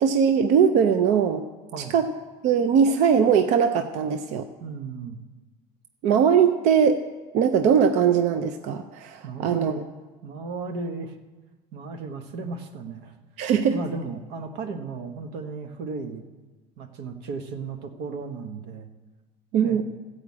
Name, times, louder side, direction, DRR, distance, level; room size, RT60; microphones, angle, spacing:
voice 1, 0.0-1.4 1.8-2.1 2.4-4.5 6.0-7.0 7.3-9.7 13.4-13.8 19.5-19.8, right 7 dB, 55° right, 8 dB, 0.6 m, -20 dB
voice 2, 4.6-5.2 9.2-9.9 10.2-11.1 11.7-13.1 13.6-16.3 16.8-18.9 19.5-19.8, right 4 dB, 85° right, 6 dB, 1.3 m, -35 dB
15.0 x 5.0 x 8.5 m, 1.3 s
cardioid pair, 180°, 15 cm